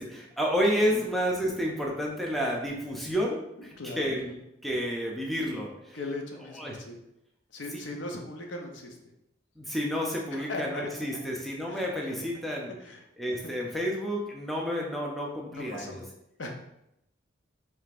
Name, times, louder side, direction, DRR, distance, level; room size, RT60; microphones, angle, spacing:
voice 1, 0.0-6.0 6.6-6.7 9.6-12.7 13.2-16.0, equal, ahead, -2 dB, 0.5 m, -30 dB
voice 2, 3.6-4.1 5.9-7.0 7.5-9.0 10.3-10.9 11.7-12.2 12.8-13.0 13.3-13.8 15.5-16.0 16.4-16.5, left 2 dB, 65° left, 2 dB, 0.6 m, -39 dB
5.0 x 3.2 x 2.4 m, 0.84 s
head